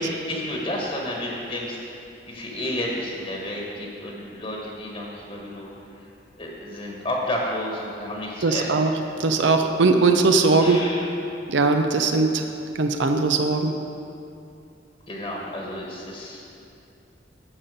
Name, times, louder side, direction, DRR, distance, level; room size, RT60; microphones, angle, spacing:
voice 1, 0.0-5.7 6.4-8.8 10.6-11.1 15.1-16.4, left 1 dB, 30° left, -2 dB, 1.3 m, -31 dB
voice 2, 8.4-8.9 9.2-10.8 11.5-12.4 12.8-13.7, right 3 dB, 80° right, 6 dB, 0.6 m, -20 dB
12.0 x 4.3 x 7.6 m, 2.6 s
head